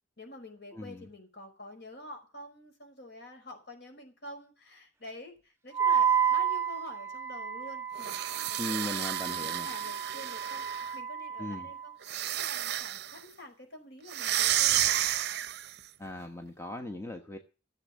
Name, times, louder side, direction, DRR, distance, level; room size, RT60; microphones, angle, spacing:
voice 1, 0.2-8.9 9.2-10.6 10.9-12.0 12.4-15.1, left 1 dB, 55° left, 5.3 m, -48 dB
voice 2, 0.7-1.1 8.6-9.7 11.4-11.7 16.0-17.4, left 1 dB, 15° left, 1.1 m, -38 dB
Wind instrument woodwind instrument, 5.7-11.9, right 8 dB, 15° right, 0.7 m, -31 dB
sound 1, 8.0-10.9 12.0-13.2 14.1-15.8, right 12 dB, 55° right, 0.7 m, -31 dB
16.0 x 7.4 x 8.4 m
head